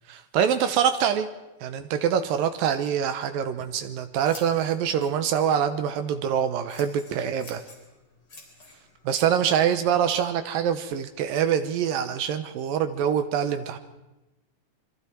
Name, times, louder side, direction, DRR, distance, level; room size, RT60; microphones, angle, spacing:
voice 1, 0.1-1.3 1.6-7.6 9.1-13.8, right 8 dB, 75° right, 9 dB, 2.2 m, -25 dB
Scissors, 3.4-11.5, left 3 dB, 25° left, 4.4 m, -52 dB
27.0 x 23.5 x 4.5 m, 1.0 s
omnidirectional pair, 5.0 m